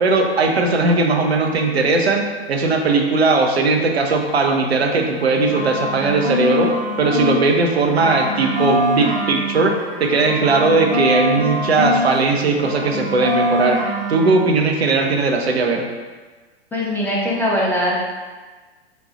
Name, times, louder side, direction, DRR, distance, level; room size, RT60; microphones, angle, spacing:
voice 1, 0.0-6.7 7.0-15.8, right 3 dB, 75° right, 2 dB, 0.6 m, -18 dB
sound 1, 5.1-7.4 7.7-12.1 12.3-14.4, equal, 25° right, 1.0 m, -24 dB
voice 2, 16.7-18.1, equal, 5° left, -6 dB, 0.5 m, -21 dB
4.0 x 2.3 x 3.8 m, 1.3 s
figure-of-eight pair, 105°, 32 cm